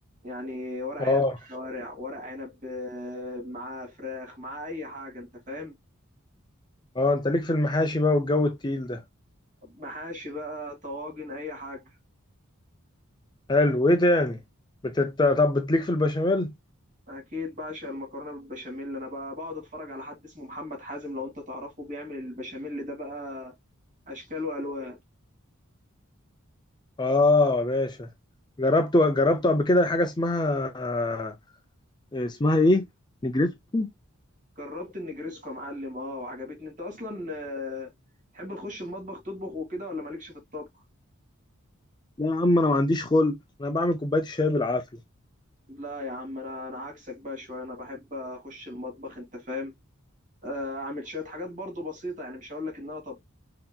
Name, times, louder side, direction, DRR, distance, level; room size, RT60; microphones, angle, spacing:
voice 1, 0.2-5.7 9.6-11.8 17.1-23.5 24.1-25.0 34.6-37.9 38.3-40.8 45.7-49.7 50.4-53.2, left 2 dB, 40° right, 2.2 m, -37 dB
voice 2, 1.0-1.3 7.0-9.0 13.5-14.4 14.8-16.5 27.0-28.1 28.6-31.3 32.1-32.9 33.2-33.9 42.2-44.8, left 2 dB, 20° left, 0.5 m, -23 dB
5.6 x 2.9 x 2.3 m
head